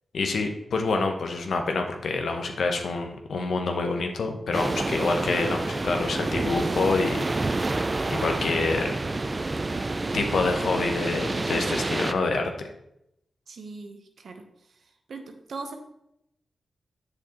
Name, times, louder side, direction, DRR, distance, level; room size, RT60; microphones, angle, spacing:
voice 1, 0.1-7.2 8.1-9.0 10.1-12.5, left 3 dB, 80° left, 4 dB, 0.9 m, -27 dB
sound 1, 4.5-12.1, right 2 dB, 35° right, 0.5 m, -28 dB
voice 2, 13.5-14.4 15.1-15.8, right 3 dB, 75° right, 5 dB, 1.0 m, -39 dB
7.6 x 6.5 x 3.0 m, 0.81 s
cardioid pair, 45°, 0 cm